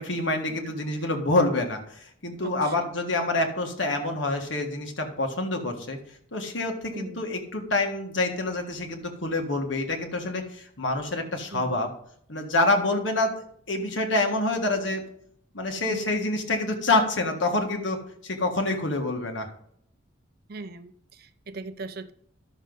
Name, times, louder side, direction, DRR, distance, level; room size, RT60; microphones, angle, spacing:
voice 1, 0.0-6.0 6.3-11.9 12.3-13.3 13.7-15.0 15.5-19.5, left 2 dB, 65° left, 3 dB, 1.6 m, -27 dB
voice 2, 2.4-2.9 6.9-7.2 11.5-11.8 15.8-16.1 20.5-22.1, right 3 dB, 50° right, 12 dB, 0.5 m, -39 dB
12.5 x 6.4 x 3.9 m, 0.68 s
head